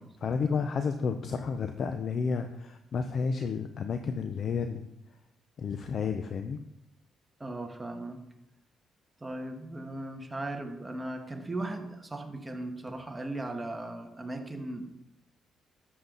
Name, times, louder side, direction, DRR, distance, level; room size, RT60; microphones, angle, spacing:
voice 1, 0.0-4.9 5.6-6.6, left 5 dB, 55° left, 7 dB, 0.7 m, -31 dB
voice 2, 7.4-8.2 9.2-14.9, right 2 dB, 15° right, 4 dB, 1.6 m, -37 dB
12.0 x 7.7 x 4.0 m, 0.88 s
cardioid pair, 90°, 0 cm